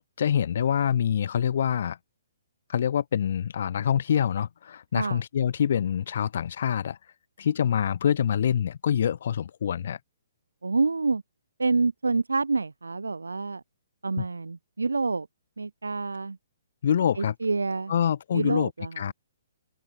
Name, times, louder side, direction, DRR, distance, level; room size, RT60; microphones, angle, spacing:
voice 1, 0.2-2.0 2.7-7.0 7.4-10.0 14.2-14.3 16.8-17.3 17.9-18.7 19.0-19.1, left 8 dB, 60° left, 5.2 m, -25 dB
voice 2, 10.6-11.2 11.6-13.6 14.0-15.3 15.6-16.4 17.2-17.9 18.3-19.1, right 3 dB, 85° right, 7.0 m, -27 dB
hypercardioid pair, 135°, 0 cm